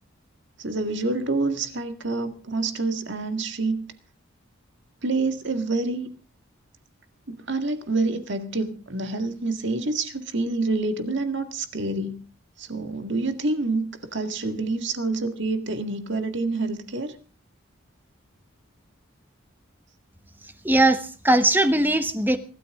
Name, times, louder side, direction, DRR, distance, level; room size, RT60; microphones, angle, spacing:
voice 1, 0.6-3.9 5.0-6.1 7.3-12.2 12.6-17.1, right 3 dB, 60° right, 7 dB, 1.9 m, -27 dB
voice 2, 20.6-22.4, right 1 dB, 10° right, 9 dB, 1.2 m, -20 dB
23.5 x 13.0 x 3.7 m, 0.37 s
head